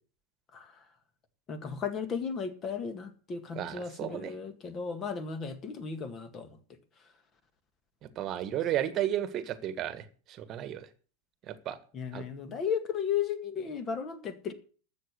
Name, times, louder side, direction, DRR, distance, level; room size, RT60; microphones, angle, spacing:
voice 1, 1.5-6.5 11.9-14.5, left 7 dB, 25° left, 1.9 m, -35 dB
voice 2, 3.5-4.3 8.1-10.0 10.4-10.9 11.5-11.8 12.1-12.2, right 11 dB, 30° right, 1.6 m, -33 dB
13.0 x 7.7 x 8.2 m
figure-of-eight pair, 90°, 0 cm